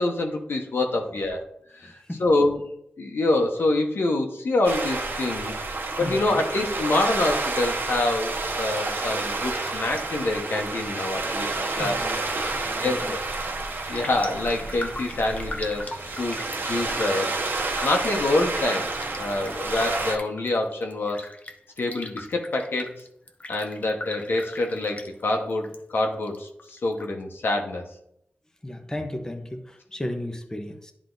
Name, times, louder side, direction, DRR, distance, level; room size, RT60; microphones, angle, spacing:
voice 1, 0.0-1.4 1.7-2.6 3.0-5.5 6.0-12.0 12.5-13.1 13.9-18.9 19.2-21.2 21.8-23.0 23.5-27.9, left 2 dB, 80° left, 2 dB, 1.2 m, -26 dB
voice 2, 1.8-2.2 6.0-6.5 11.8-13.2 28.6-30.9, left 1 dB, 15° left, 4 dB, 1.0 m, -35 dB
sound 1, 4.6-20.2, right 3 dB, 75° right, 1.2 m, -30 dB
Raindrop, 13.3-13.5 13.7-25.8 26.1-27.1 27.4-27.5, left 2 dB, 40° left, 0.8 m, -40 dB
10.5 x 3.7 x 4.0 m, 0.73 s
wide cardioid pair, 75°, 4 cm